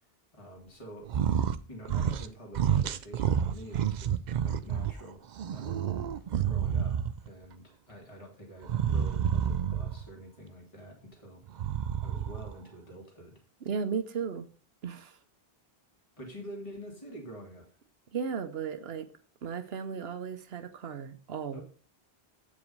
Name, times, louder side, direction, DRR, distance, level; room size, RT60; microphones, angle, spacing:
voice 1, 0.3-1.1 1.7-5.2 5.5-5.8 6.5-11.4 12.0-13.4 16.2-17.7 21.5-21.6, equal, 30° left, 2.2 m, -47 dB
sound 1, 1.1-1.6 1.8-2.3 2.5-4.9 5.4-7.3 8.6-10.1 11.5-12.5, right 8 dB, 55° right, 0.5 m, -29 dB
voice 2, 13.6-14.5 14.8-15.2 18.1-19.1 19.4-21.6, right 6 dB, 75° right, 1.0 m, -35 dB
8.2 x 5.0 x 5.3 m
omnidirectional pair, 1.1 m